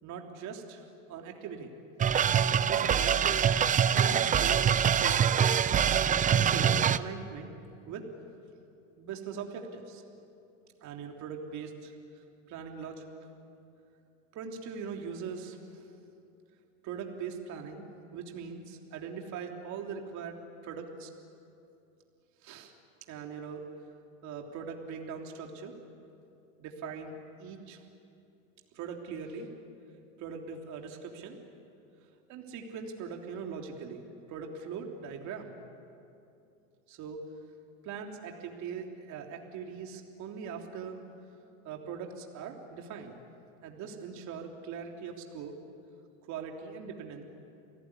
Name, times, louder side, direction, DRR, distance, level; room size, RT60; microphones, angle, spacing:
voice 1, 0.0-0.8 1.1-1.7 2.6-3.3 3.9-4.6 4.9-5.2 6.0-7.5 7.9-8.0 9.0-10.0 10.8-13.1 14.3-15.9 16.8-17.8 18.1-20.4 20.6-21.1 22.4-22.7 23.1-23.6 24.2-25.7 26.6-27.1 27.4-27.8 28.7-29.5 30.2-31.4 32.3-34.0 34.3-35.5 36.9-37.2 37.8-41.0 41.6-43.2 43.6-45.6 46.2-47.2, right 6 dB, 45° right, 2 dB, 3.4 m, -41 dB
sound 1, 2.0-7.0, right 8 dB, 20° right, 0.6 m, -24 dB
29.5 x 18.0 x 9.9 m, 2.6 s
supercardioid pair, 115°, 38 cm